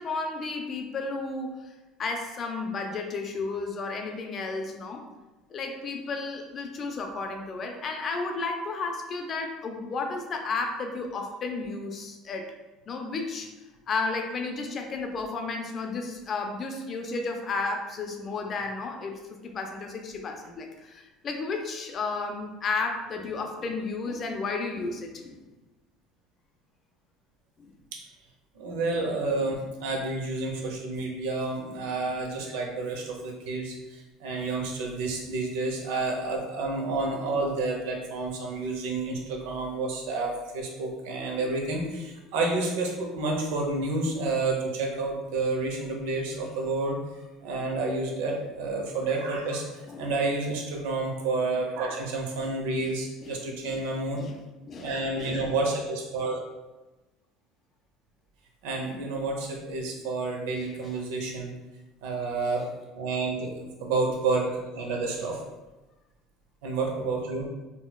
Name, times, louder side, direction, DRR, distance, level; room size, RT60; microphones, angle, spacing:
voice 1, 0.0-1.6 2.0-5.0 5.5-12.5 12.9-13.5 13.9-25.3 27.6-27.7 49.9-50.1 52.4-52.5 52.8-52.9 53.2-53.8 54.1-54.4 54.7-55.4, left 3 dB, 40° left, 4 dB, 0.5 m, -33 dB
voice 2, 28.6-47.0 47.4-54.2 54.8-56.4 58.6-61.5 62.0-62.6 62.9-65.4 66.6-67.5, right 3 dB, 85° right, 0 dB, 0.7 m, -30 dB
4.1 x 2.2 x 2.2 m, 1.1 s
supercardioid pair, 105°, 0 cm